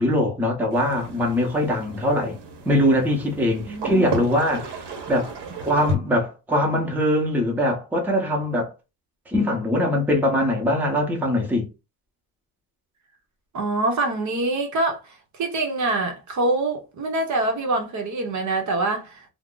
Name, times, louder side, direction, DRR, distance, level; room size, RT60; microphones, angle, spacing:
voice 1, 0.0-2.4 2.6-4.8 5.1-5.3 5.6-8.7 9.3-11.7, left 1 dB, 5° right, 0.7 m, -22 dB
sound 1, 0.7-6.0, right 2 dB, 80° right, 1.0 m, -33 dB
voice 2, 3.7-4.1 13.5-19.2, right 2 dB, 45° right, 0.7 m, -25 dB
2.4 x 2.0 x 3.6 m
cardioid pair, 135°, 40 cm